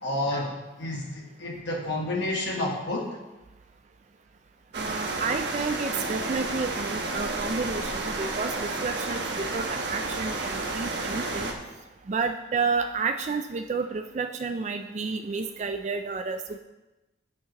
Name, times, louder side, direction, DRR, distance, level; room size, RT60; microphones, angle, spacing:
voice 1, 0.0-3.1, left 1 dB, 70° left, -1 dB, 1.2 m, -30 dB
voice 2, 4.7-11.5 12.1-16.6, right 4 dB, 35° right, 7 dB, 0.3 m, -31 dB
sound 1, 4.7-11.5, right 2 dB, 65° right, 1.1 m, -31 dB
10.5 x 8.3 x 2.9 m, 1.1 s
head